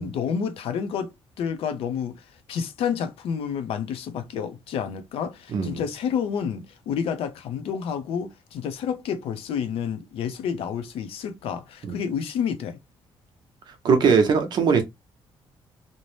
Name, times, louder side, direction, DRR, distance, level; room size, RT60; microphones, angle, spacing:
voice 1, 0.0-12.8, left 7 dB, 80° left, 0.5 m, -29 dB
voice 2, 5.5-5.8 11.8-12.0 13.7-14.8, right 5 dB, 50° right, 0.6 m, -21 dB
2.6 x 2.0 x 3.1 m
cardioid pair, 180°, 10 cm